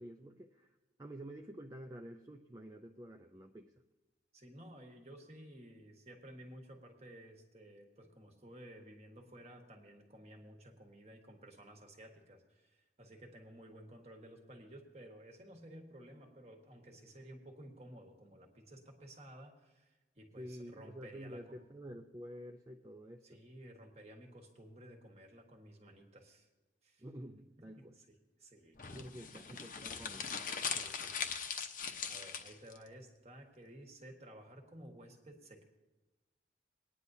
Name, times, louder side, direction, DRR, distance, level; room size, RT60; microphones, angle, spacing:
voice 1, 0.0-3.7 20.4-23.4 27.0-28.0 28.9-30.3, equal, 20° right, 3 dB, 0.4 m, -49 dB
voice 2, 4.3-21.6 23.2-26.5 26.8-27.0 27.6-28.8 30.7-31.4 32.1-35.6, right 1 dB, 35° right, 3 dB, 1.4 m, -54 dB
sound 1, 28.8-32.8, left 6 dB, 50° left, 0.8 m, -40 dB
20.5 x 9.9 x 2.7 m, 1.1 s
head